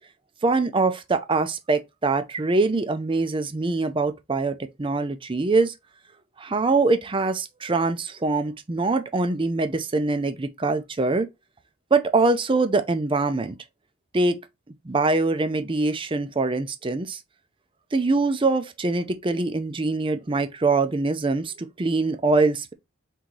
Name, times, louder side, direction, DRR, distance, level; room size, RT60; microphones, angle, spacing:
voice 1, 0.4-5.7 6.4-11.3 11.9-13.6 14.1-14.4 14.9-17.2 17.9-22.7, right 3 dB, 25° right, 0.5 m, -23 dB
3.8 x 2.8 x 4.6 m
head